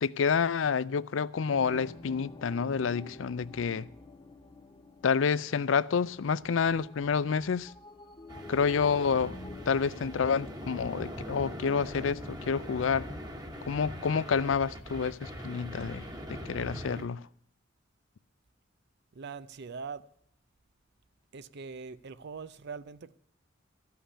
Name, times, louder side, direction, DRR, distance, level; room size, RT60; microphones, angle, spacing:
voice 1, 0.0-3.9 5.0-7.7 8.5-9.4 9.7-13.1 13.7-17.2, left 6 dB, 75° left, 0.5 m, -29 dB
sound 1, 1.5-14.1, left 3 dB, 25° left, 1.2 m, -49 dB
sound 2, 8.3-17.1, equal, 20° right, 1.5 m, -42 dB
voice 2, 19.1-20.1 21.3-23.1, right 5 dB, 60° right, 0.6 m, -42 dB
14.5 x 5.7 x 9.8 m
head